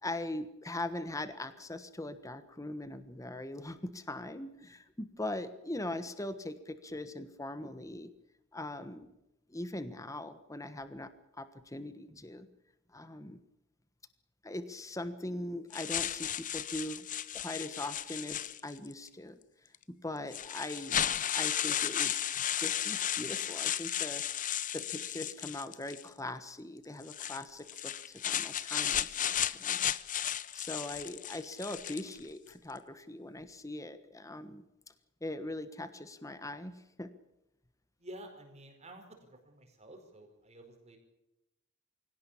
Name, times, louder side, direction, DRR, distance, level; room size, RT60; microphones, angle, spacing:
voice 1, 0.0-8.1 8.5-9.1 9.5-11.1 11.4-12.5 12.9-13.4 14.4-17.1 17.3-19.4 20.0-22.1 22.5-24.2 24.7-29.9 30.5-34.6 35.2-37.1, left 1 dB, 15° left, 11 dB, 1.3 m, -41 dB
sound 1, 15.7-18.9 19.7-19.8 20.3-26.1 27.0-32.2, left 10 dB, 40° left, 0.8 m, -34 dB
voice 2, 38.0-41.0, right 1 dB, 30° right, 3 dB, 4.8 m, -51 dB
24.5 x 17.5 x 8.6 m, 0.89 s
head